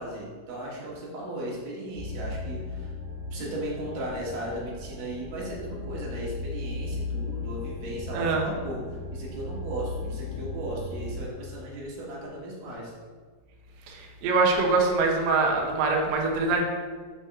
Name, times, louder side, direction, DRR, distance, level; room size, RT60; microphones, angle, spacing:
voice 1, 0.0-2.9 3.3-12.9, right 1 dB, 60° right, -4 dB, 3.0 m, -36 dB
sound 1, 1.9-11.2, left 2 dB, 30° right, 2.3 m, -36 dB
voice 2, 8.1-8.5 13.9-16.6, right 3 dB, 90° right, 0 dB, 1.5 m, -24 dB
8.6 x 5.4 x 3.6 m, 1.5 s
omnidirectional pair, 4.6 m